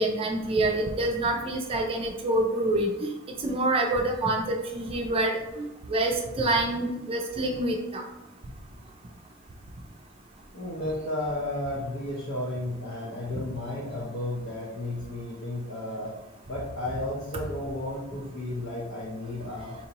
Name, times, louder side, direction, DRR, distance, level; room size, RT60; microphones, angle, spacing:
voice 1, 0.0-3.1 3.4-8.0, right 2 dB, 25° right, 2 dB, 0.4 m, -27 dB
voice 2, 10.5-16.1 16.5-19.7, left 1 dB, 75° left, -6 dB, 0.9 m, -33 dB
4.3 x 2.8 x 2.9 m, 0.97 s
head